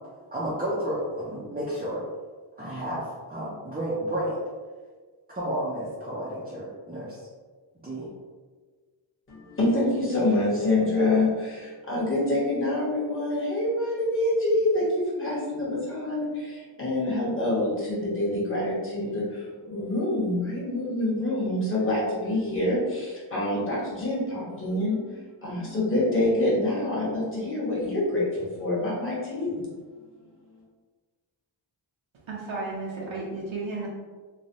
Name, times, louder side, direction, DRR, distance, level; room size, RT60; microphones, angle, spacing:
voice 1, 0.3-2.0 2.6-4.4 5.3-7.3 7.8-8.1, right 1 dB, 20° right, -8 dB, 0.5 m, -31 dB
voice 2, 9.3-29.7, left 1 dB, 25° left, -7 dB, 1.1 m, -26 dB
voice 3, 32.3-33.9, right 3 dB, 70° right, -5 dB, 0.7 m, -33 dB
3.1 x 2.2 x 2.6 m, 1.4 s
wide cardioid pair, 110°, 49 cm